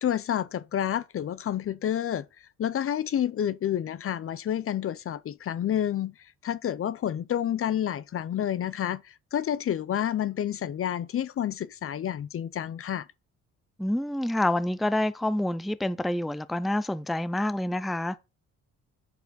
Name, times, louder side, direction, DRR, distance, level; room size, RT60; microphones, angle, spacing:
voice 1, 0.0-2.3 2.6-6.1 6.4-13.1, left 10 dB, 45° left, 0.6 m, -29 dB
voice 2, 13.8-18.2, left 1 dB, ahead, 0.5 m, -27 dB
9.5 x 6.8 x 4.2 m
cardioid pair, 90°, 30 cm